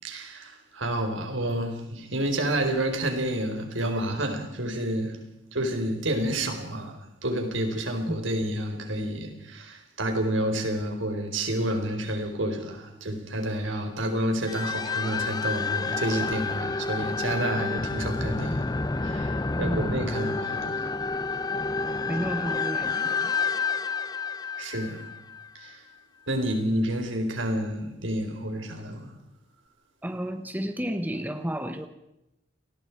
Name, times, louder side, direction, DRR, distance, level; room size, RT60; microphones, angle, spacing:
voice 1, 0.0-5.2 5.5-18.7 19.0-20.9 24.6-25.1 25.5-25.8 26.3-29.1, right 1 dB, 85° right, 5 dB, 4.2 m, -29 dB
sound 1, 14.5-25.7, left 4 dB, 20° left, 0.7 m, -29 dB
voice 2, 19.6-20.0 22.0-23.3 30.0-31.9, equal, 10° right, 8 dB, 1.1 m, -32 dB
28.5 x 20.0 x 4.7 m, 0.88 s
head